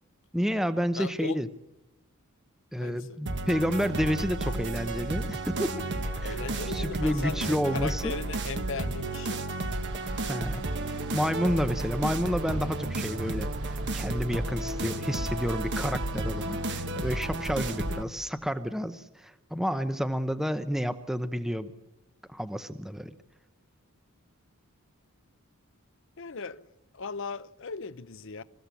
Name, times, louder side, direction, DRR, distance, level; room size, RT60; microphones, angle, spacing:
voice 1, 0.3-1.5 2.7-5.7 6.2-6.4 6.7-8.1 10.3-10.7 11.0-13.5 13.9-21.7 22.3-23.1, equal, ahead, 0.8 m, -30 dB
voice 2, 0.9-1.4 2.7-3.2 6.2-9.5 26.2-26.7 26.9-28.4, left 4 dB, 60° left, 0.8 m, -38 dB
sound 1, 3.3-18.0, right 2 dB, 50° right, 1.5 m, -32 dB
Boat Water vehicle, 9.7-18.0, right 2 dB, 70° right, 4.1 m, -49 dB
26.5 x 15.0 x 8.4 m
head